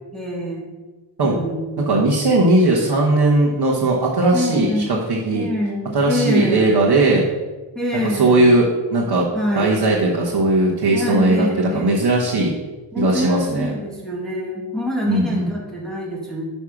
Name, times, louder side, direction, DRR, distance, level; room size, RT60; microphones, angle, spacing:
voice 1, 0.1-0.7 1.2-1.9 4.3-4.9 5.3-6.8 7.7-8.5 9.3-9.8 10.9-12.0 12.9-16.4, left 1 dB, ahead, -4 dB, 1.5 m, -25 dB
voice 2, 1.8-4.8 5.1-5.5 5.9-7.3 8.2-9.3 9.6-12.5 13.0-13.7 15.1-15.5, right 2 dB, 55° right, -4 dB, 1.4 m, -18 dB
9.9 x 3.5 x 6.0 m, 1.2 s
wide cardioid pair, 105°, 47 cm